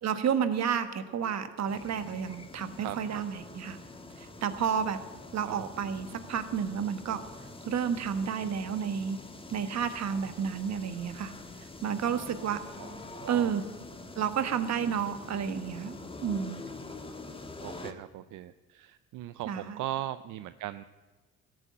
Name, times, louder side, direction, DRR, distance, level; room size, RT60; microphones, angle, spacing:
voice 1, 0.0-3.8 4.2-5.0 5.3-7.2 7.7-9.2 9.5-11.3 11.8-12.6 13.3-13.6 14.2-15.9 16.2-16.6 19.5-19.8, right 7 dB, 60° right, 10 dB, 1.3 m, -31 dB
sound 1, 1.7-17.9, left 3 dB, 20° left, 1.4 m, -45 dB
voice 2, 2.8-3.2 5.4-5.7 12.8-13.6 17.6-20.8, right 14 dB, 80° right, 13 dB, 0.5 m, -39 dB
14.5 x 9.0 x 8.5 m, 1.3 s
cardioid pair, 90°, 30 cm